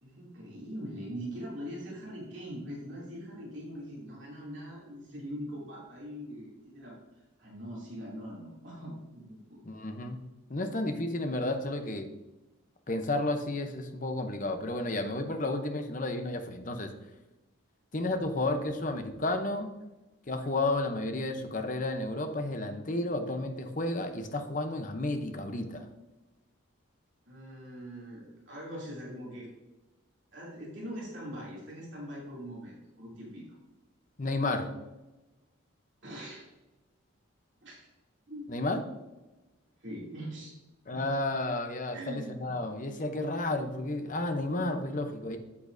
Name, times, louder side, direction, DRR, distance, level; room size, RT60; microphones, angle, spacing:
voice 1, 0.0-7.0 7.4-9.6 27.3-29.5 30.3-33.4 36.0-36.4 37.6-37.7 38.3-38.6 39.8-40.6 40.9-41.1 41.9-42.5 43.1-43.3, equal, 60° right, -6 dB, 2.8 m, -42 dB
voice 2, 9.6-10.2 10.5-12.1 12.9-16.9 17.9-19.7 20.3-25.9 34.2-34.7 38.5-38.8 40.9-45.4, left 2 dB, 40° left, 7 dB, 0.7 m, -32 dB
8.6 x 8.4 x 2.6 m, 1.1 s
head